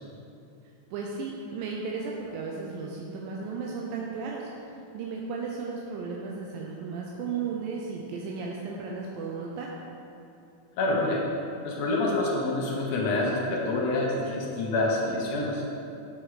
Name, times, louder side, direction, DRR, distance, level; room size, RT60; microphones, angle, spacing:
voice 1, 0.9-9.7, right 4 dB, 85° right, -2 dB, 2.4 m, -35 dB
voice 2, 10.8-11.2 11.6-15.6, left 2 dB, 65° left, -2 dB, 1.8 m, -27 dB
7.4 x 6.5 x 4.9 m, 2.7 s
omnidirectional pair, 4.0 m